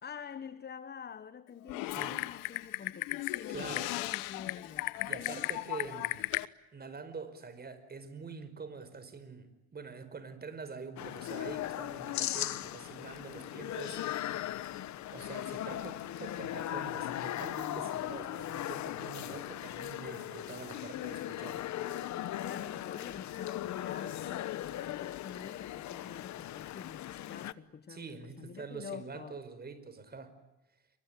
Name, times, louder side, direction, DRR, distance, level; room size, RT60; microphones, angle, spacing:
voice 1, 0.0-5.5 22.4-29.4, left 7 dB, 30° left, 1.2 m, -47 dB
Typing, 1.7-6.4, left 20 dB, 80° left, 1.1 m, -36 dB
voice 2, 3.5-4.0 5.1-6.3 6.7-14.3 15.1-21.6 27.9-30.3, right 4 dB, 25° right, 5.1 m, -45 dB
sound 1, 11.0-27.5, left 13 dB, 55° left, 1.2 m, -38 dB
28.0 x 23.5 x 9.0 m
cardioid pair, 105°, 34 cm